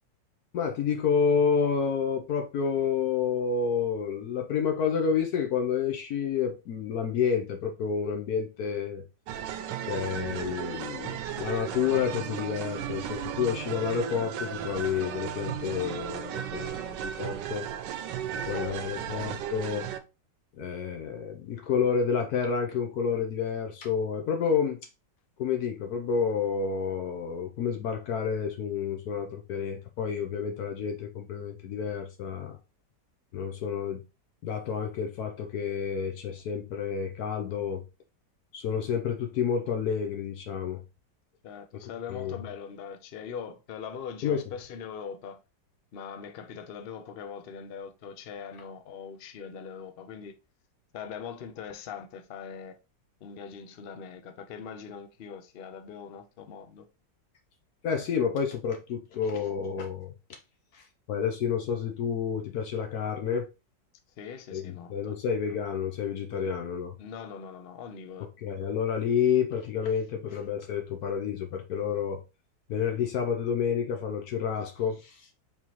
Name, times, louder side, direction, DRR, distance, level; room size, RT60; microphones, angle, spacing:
voice 1, 0.5-9.0 9.9-17.7 18.5-19.9 20.6-24.8 25.4-32.6 33.3-34.0 34.4-37.8 38.5-40.8 42.1-42.3 44.2-44.4 57.8-60.1 60.7-63.5 64.5-66.9 68.4-72.2 72.7-75.2, left 7 dB, 70° left, 1.1 m, -29 dB
sound 1, 9.3-20.0, right 9 dB, 80° right, 1.2 m, -35 dB
voice 2, 18.3-19.3 41.4-45.4 45.9-50.4 50.9-52.8 53.2-56.8 64.2-65.2 66.3-66.5 67.0-68.3, left 7 dB, 90° left, 0.5 m, -42 dB
4.5 x 3.6 x 3.0 m
omnidirectional pair, 1.9 m